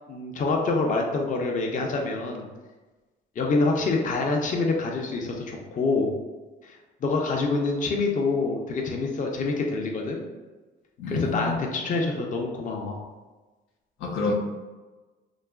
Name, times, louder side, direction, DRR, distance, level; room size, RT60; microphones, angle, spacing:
voice 1, 0.1-2.5 3.4-6.1 6.6-10.2 11.1-13.0, left 3 dB, 40° left, 1 dB, 0.5 m, -26 dB
voice 2, 11.0-11.6 14.0-14.3, left 3 dB, 85° left, 0 dB, 0.5 m, -28 dB
2.8 x 2.3 x 2.2 m, 1.2 s
cardioid pair, 90°, 20 cm